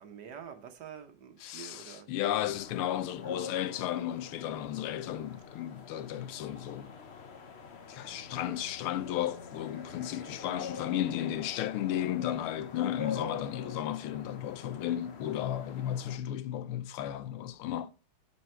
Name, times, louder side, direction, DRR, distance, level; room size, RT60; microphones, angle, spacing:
voice 1, 0.0-2.1, right 8 dB, 60° right, 1.4 m, -47 dB
voice 2, 1.4-6.9 7.9-17.9, left 11 dB, 85° left, 1.6 m, -34 dB
sound 1, 2.4-16.2, left 5 dB, 45° left, 0.8 m, -45 dB
11.0 x 4.6 x 4.4 m
omnidirectional pair, 2.3 m